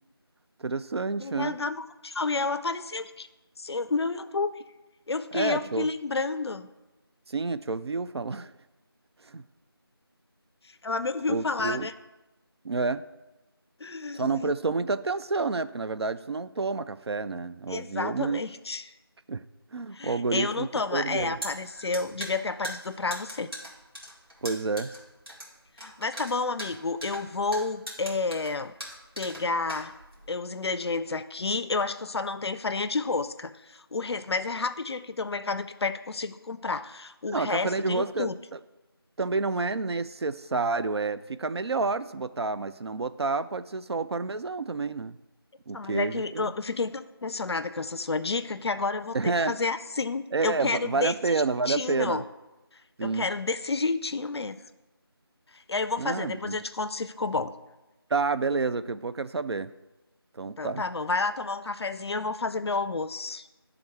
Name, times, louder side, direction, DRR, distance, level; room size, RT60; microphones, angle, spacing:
voice 1, 0.6-1.6 5.3-5.9 7.3-8.5 9.3-9.4 11.3-11.9 12.6-13.0 14.1-18.4 19.3-19.4 19.7-21.4 24.4-24.9 37.3-38.6 39.2-45.2 45.7-46.5 49.1-49.5 50.3-52.2 53.0-53.3 56.0-56.6 58.1-59.7 60.4-60.8, right 3 dB, 90° right, 13 dB, 0.4 m, -29 dB
voice 2, 1.2-3.3 3.6-4.5 5.1-6.7 10.8-11.9 13.8-14.5 17.7-18.9 19.9-23.5 25.8-28.7 29.2-29.9 30.3-38.4 45.7-51.1 51.7-52.2 53.0-54.6 55.5-57.5 60.6-63.5, left 3 dB, 85° left, 10 dB, 0.4 m, -30 dB
sound 1, 21.1-30.3, equal, 70° right, 2.1 m, -40 dB
10.5 x 3.5 x 3.5 m, 1.1 s
figure-of-eight pair, 180°, 13 cm